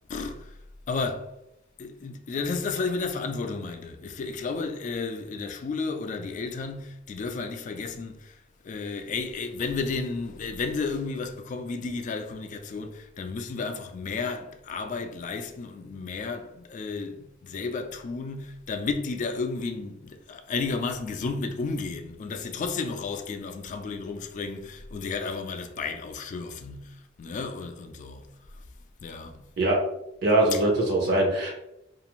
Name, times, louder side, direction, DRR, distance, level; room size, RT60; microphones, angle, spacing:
voice 1, 0.1-0.5 0.9-1.3 1.8-8.4 8.6-28.3 29.0-29.4 30.5-30.6, left 4 dB, 40° left, 0.3 m, -32 dB
voice 2, 30.2-31.5, right 2 dB, 60° right, 0.7 m, -22 dB
2.5 x 2.4 x 3.0 m
head